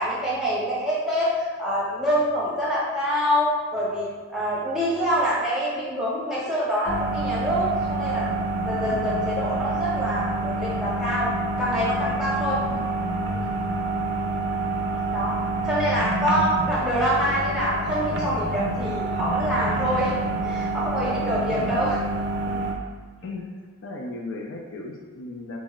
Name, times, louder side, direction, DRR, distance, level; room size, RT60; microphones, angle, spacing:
voice 1, 0.0-8.3 8.6-11.3 11.6-12.6 13.3-13.4 15.1-15.4 15.6-20.1 20.4-22.0 22.4-22.6, equal, ahead, -8 dB, 0.8 m, -25 dB
sound 1, 6.9-22.7, right 2 dB, 50° right, 0.4 m, -27 dB
voice 2, 12.5-12.8 15.5-15.7 21.4-21.8 23.2-23.5 23.8-25.6, left 2 dB, 55° left, -1 dB, 0.4 m, -37 dB
4.0 x 2.1 x 3.6 m, 1.4 s
head